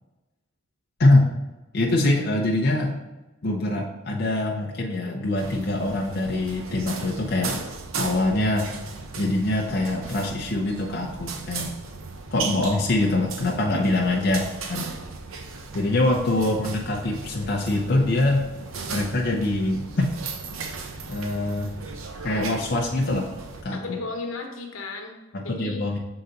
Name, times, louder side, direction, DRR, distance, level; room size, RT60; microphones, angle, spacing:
voice 1, 1.7-2.9 3.4-7.6 8.0-8.7 9.2-11.7 12.3-14.4 14.7-14.9 15.7-18.5 18.9-20.2 21.1-21.7 22.2-23.3 23.6-24.0 25.3-26.0, left 2 dB, 50° left, -1 dB, 0.6 m, -24 dB
sound 1, 5.4-23.6, right 4 dB, 80° right, 0.7 m, -36 dB
voice 2, 13.7-14.0 23.7-25.2 25.4-26.0, left 3 dB, 85° left, 2 dB, 1.1 m, -35 dB
6.7 x 3.9 x 3.9 m, 1.1 s
head